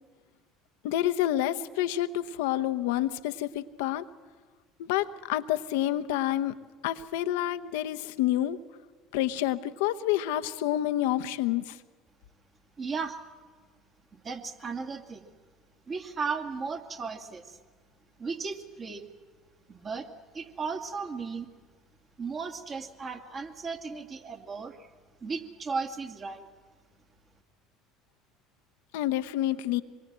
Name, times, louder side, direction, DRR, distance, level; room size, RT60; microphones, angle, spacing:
voice 1, 0.8-4.1 4.8-6.6 6.8-8.6 9.1-11.8 28.9-29.8, left 13 dB, 75° left, 10 dB, 1.0 m, -28 dB
voice 2, 12.8-13.2 14.1-15.3 15.9-17.6 18.2-19.0 19.7-20.1 20.3-21.5 22.2-24.9 25.2-26.5, right 5 dB, 35° right, 4 dB, 2.5 m, -35 dB
25.5 x 22.0 x 7.6 m, 1.5 s
hypercardioid pair, 70°, 0 cm